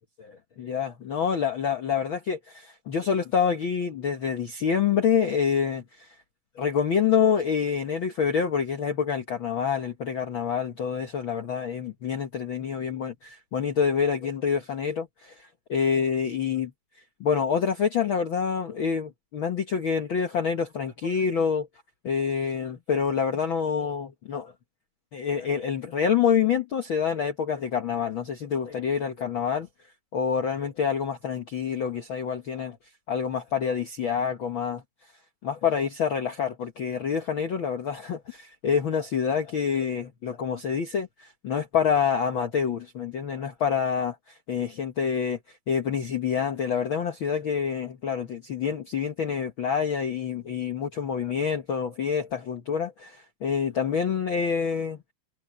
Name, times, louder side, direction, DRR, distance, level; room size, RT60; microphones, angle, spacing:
voice 1, 0.2-6.1 6.6-16.7 17.2-21.7 22.0-24.5 25.1-29.7 30.1-32.8 33.1-34.8 35.4-44.1 44.5-45.4 45.7-55.1, left 7 dB, 85° left, 1.1 m, -27 dB
omnidirectional pair, 4.2 m